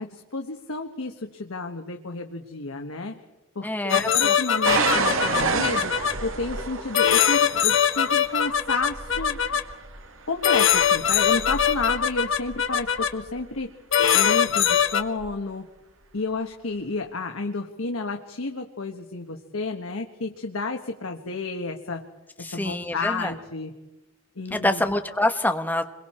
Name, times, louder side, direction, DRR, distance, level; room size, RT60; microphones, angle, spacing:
voice 1, 0.0-3.2 3.5-5.9 6.2-9.6 10.3-13.7 14.1-15.6 16.1-22.0 22.4-23.7 24.4-24.8, left 3 dB, 90° left, 4 dB, 1.3 m, -31 dB
voice 2, 3.6-4.3 22.4-23.3 24.5-25.8, left 1 dB, 10° left, 6 dB, 1.3 m, -26 dB
sound 1, 3.9-6.1 6.9-9.6 10.4-13.1 13.9-15.0, left 8 dB, 70° left, 1.3 m, -22 dB
sound 2, 4.6-13.4 14.2-14.6 15.2-15.3, right 4 dB, 80° right, 1.9 m, -30 dB
27.0 x 22.5 x 4.4 m, 1.1 s
head